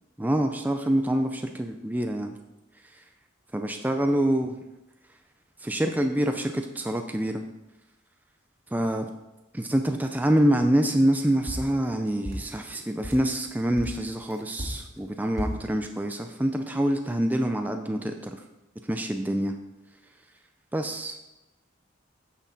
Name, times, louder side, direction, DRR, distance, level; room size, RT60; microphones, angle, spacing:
voice 1, 0.2-2.4 2.9-3.0 3.5-4.5 5.6-7.4 8.7-9.1 9.5-18.4 18.9-19.5 20.7-21.2, right 1 dB, 10° right, 5 dB, 0.4 m, -26 dB
sound 1, 11.5-13.3 13.8-15.7, equal, 90° right, 1.9 m, -35 dB
9.9 x 6.3 x 4.1 m, 0.98 s
head